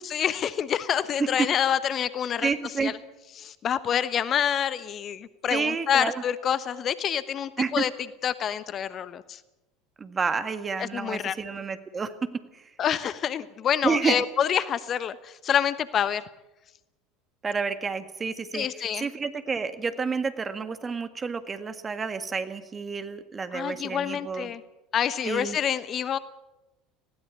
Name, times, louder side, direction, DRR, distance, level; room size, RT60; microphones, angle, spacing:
voice 1, 0.0-2.5 2.8-2.9 3.4-7.9 8.2-9.4 10.8-11.3 12.8-16.2 18.5-19.1 23.5-24.6 24.9-26.2, left 9 dB, 40° left, 15 dB, 1.0 m, -27 dB
voice 2, 2.4-2.9 5.5-6.2 7.6-7.8 10.0-12.3 12.5-12.6 13.8-14.2 17.4-18.7 19.0-24.5 25.2-25.6, right 5 dB, 25° right, 10 dB, 1.9 m, -29 dB
20.0 x 16.5 x 8.4 m, 0.97 s
hypercardioid pair, 75°, 0 cm